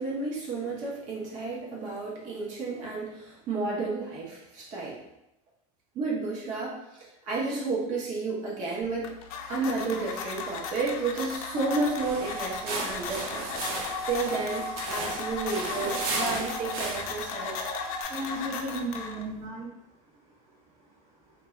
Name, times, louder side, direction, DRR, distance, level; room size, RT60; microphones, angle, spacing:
voice 1, 0.0-5.0 5.9-9.1 9.5-13.5 14.1-17.7, right 3 dB, 40° right, -4 dB, 0.9 m, -32 dB
sound 1, 8.8-19.5, left 5 dB, 80° left, 0.4 m, -37 dB
sound 2, 11.5-18.0, left 3 dB, 25° left, 0.6 m, -39 dB
sound 3, 12.0-17.2, right 3 dB, 75° right, 0.6 m, -35 dB
voice 2, 18.1-19.7 20.0-20.6 20.9-21.3, right 1 dB, 15° right, -7 dB, 0.6 m, -36 dB
2.5 x 2.3 x 3.1 m, 0.87 s
supercardioid pair, 145°, 18 cm